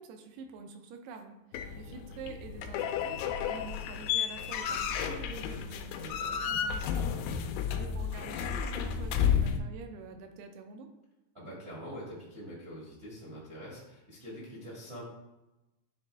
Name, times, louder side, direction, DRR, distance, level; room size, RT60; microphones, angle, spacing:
voice 1, 0.0-6.0 6.4-7.0 7.4-10.9, right 4 dB, 80° right, 5 dB, 2.6 m, -47 dB
sound 1, 1.5-9.6, left 8 dB, 90° left, 2.8 m, -32 dB
voice 2, 6.0-6.5 7.2-7.3 11.3-15.0, equal, 45° right, -6 dB, 0.7 m, -45 dB
9.8 x 4.1 x 3.4 m, 0.99 s
omnidirectional pair, 4.8 m